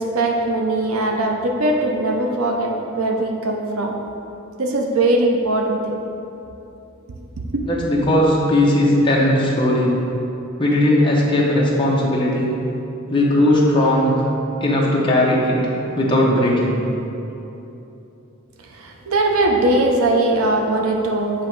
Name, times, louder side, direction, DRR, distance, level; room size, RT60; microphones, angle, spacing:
voice 1, 0.0-3.9 4.6-6.0 18.7-21.5, right 2 dB, 75° right, 1 dB, 0.6 m, -20 dB
voice 2, 7.7-9.9 10.6-12.5 13.1-14.1 14.6-16.8, left 1 dB, 20° left, -4 dB, 0.8 m, -17 dB
7.5 x 3.0 x 4.5 m, 2.9 s
head